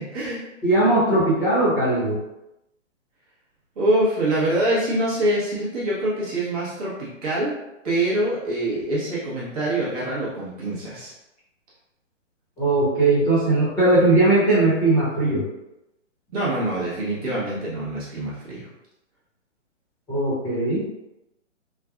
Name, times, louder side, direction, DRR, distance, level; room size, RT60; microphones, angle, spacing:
voice 1, 0.0-0.4 3.8-7.5 7.8-11.1 16.3-18.7, right 1 dB, 30° right, -8 dB, 1.0 m, -25 dB
voice 2, 0.6-2.2 12.6-15.4 20.1-20.9, right 2 dB, 10° left, -12 dB, 0.9 m, -19 dB
3.4 x 2.2 x 2.4 m, 0.92 s
hypercardioid pair, 145°, 38 cm